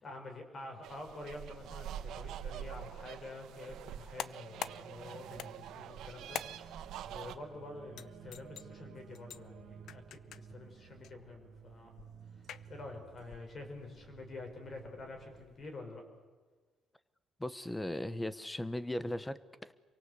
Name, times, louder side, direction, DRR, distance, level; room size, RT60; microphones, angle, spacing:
voice 1, 0.0-11.9 12.7-16.0, left 2 dB, 35° left, 4 dB, 5.5 m, -48 dB
sound 1, 0.8-7.3, right 10 dB, 85° right, 1.4 m, -45 dB
sound 2, 4.0-15.7, left 10 dB, 65° left, 0.8 m, -49 dB
sound 3, 4.5-15.5, right 8 dB, 60° right, 1.7 m, -55 dB
voice 2, 17.4-19.7, left 1 dB, 10° left, 15 dB, 1.0 m, -38 dB
27.0 x 24.0 x 8.3 m, 1.4 s
cardioid pair, 155°, 0 cm